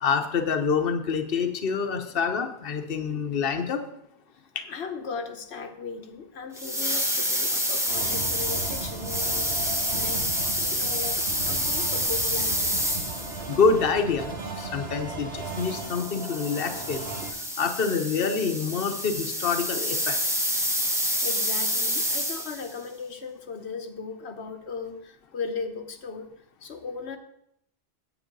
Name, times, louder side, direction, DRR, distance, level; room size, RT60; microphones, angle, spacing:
voice 1, 0.0-3.8 4.5-4.6 13.5-17.0 17.6-20.2, left 5 dB, 60° left, 6 dB, 1.1 m, -26 dB
voice 2, 4.7-12.9 20.6-26.3 26.6-27.2, left 5 dB, 85° left, 7 dB, 1.2 m, -37 dB
sound 1, 6.6-13.6 15.5-22.7, equal, 5° right, 1.2 m, -28 dB
sound 2, 7.9-17.3, right 3 dB, 70° right, 1.5 m, -37 dB
9.1 x 8.4 x 5.3 m, 0.76 s
omnidirectional pair, 1.1 m